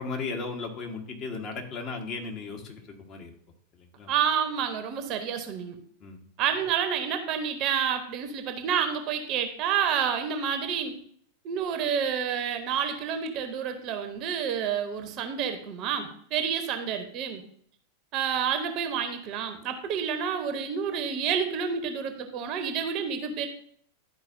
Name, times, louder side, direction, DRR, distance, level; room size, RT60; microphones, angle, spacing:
voice 1, 0.0-3.3 3.8-4.1 6.0-6.2, left 4 dB, 35° left, 1 dB, 1.3 m, -36 dB
voice 2, 4.1-5.8 6.4-11.0 11.4-17.4 18.1-23.5, right 7 dB, 40° right, 7 dB, 0.9 m, -29 dB
12.0 x 4.5 x 2.6 m, 0.62 s
figure-of-eight pair, 90°, 0 cm